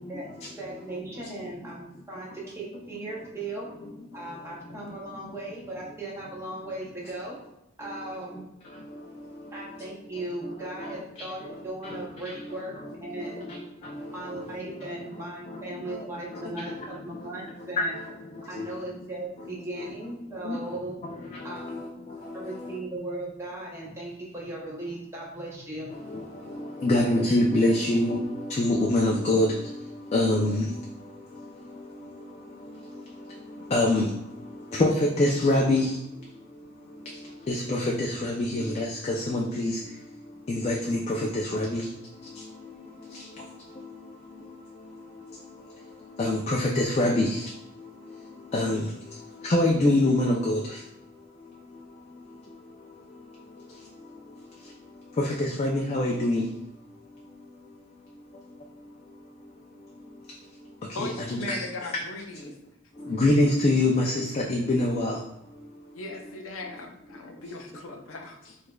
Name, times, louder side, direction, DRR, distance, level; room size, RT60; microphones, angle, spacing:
voice 1, 0.6-3.7 4.1-7.4 7.8-8.4 9.5-13.5 14.1-18.0 18.5-21.0 21.4-21.6 22.3-25.9, right 2 dB, 15° right, -5 dB, 0.6 m, -37 dB
voice 2, 26.8-28.2 28.5-29.5 30.1-30.7 33.7-34.1 34.8-34.9 35.2-35.9 37.5-39.7 40.5-41.8 46.2-47.4 48.5-48.9 49.5-50.6 55.2-56.5 61.0-61.6 63.2-65.2, left 1 dB, 30° left, -1 dB, 0.3 m, -24 dB
voice 3, 60.9-62.5 65.9-68.6, left 2 dB, 85° left, 3 dB, 0.5 m, -38 dB
4.7 x 2.4 x 2.2 m, 0.87 s
head